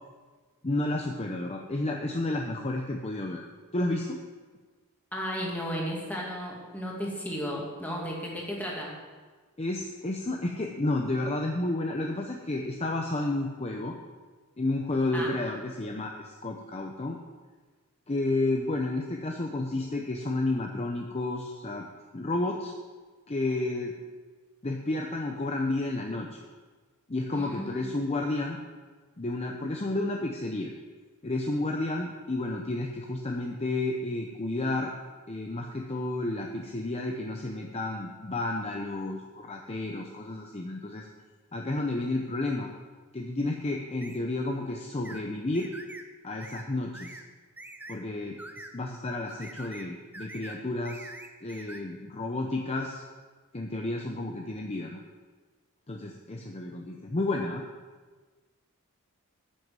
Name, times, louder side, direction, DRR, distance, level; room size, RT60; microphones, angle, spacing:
voice 1, 0.6-3.4 3.7-4.2 9.6-14.0 14.6-17.2 18.1-21.9 22.1-22.7 23.3-23.9 24.6-26.4 27.1-28.6 29.2-30.7 31.2-34.9 35.3-41.1 41.5-42.7 43.1-45.7 46.2-47.2 47.9-48.4 48.7-51.1 51.4-53.0 53.5-55.0 55.9-57.6, left 2 dB, 30° left, 1 dB, 0.7 m, -31 dB
voice 2, 5.1-8.9 15.1-15.3 27.3-27.9, equal, 5° left, -3 dB, 2.2 m, -34 dB
sound 1, 44.0-44.2 45.0-45.2 45.5-46.1 46.4-46.7 46.9-47.2 47.6-48.0 48.4-48.7 49.3-49.9 50.1-50.6 50.8-51.8, right 1 dB, 10° right, 0.6 m, -45 dB
10.0 x 6.4 x 7.5 m, 1.4 s
head